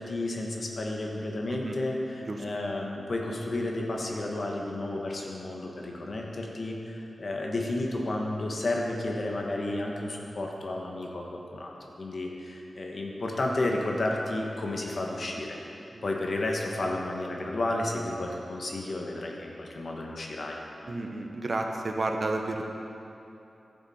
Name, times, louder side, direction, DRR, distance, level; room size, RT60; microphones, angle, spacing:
voice 1, 0.0-20.6, left 2 dB, 60° left, 0 dB, 1.3 m, -32 dB
voice 2, 20.9-22.7, right 2 dB, 55° right, 3 dB, 0.9 m, -32 dB
11.5 x 7.1 x 4.3 m, 2.9 s
cardioid pair, 65°, 0 cm